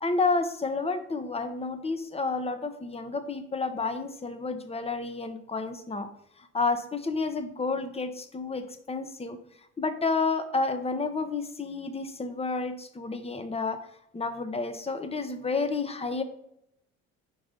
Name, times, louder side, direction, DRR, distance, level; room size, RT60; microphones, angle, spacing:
voice 1, 0.0-6.1 6.5-9.4 9.8-13.8 14.1-16.2, left 3 dB, 20° left, 9 dB, 0.8 m, -30 dB
5.1 x 4.8 x 3.8 m, 0.75 s
supercardioid pair, 70°, 30 cm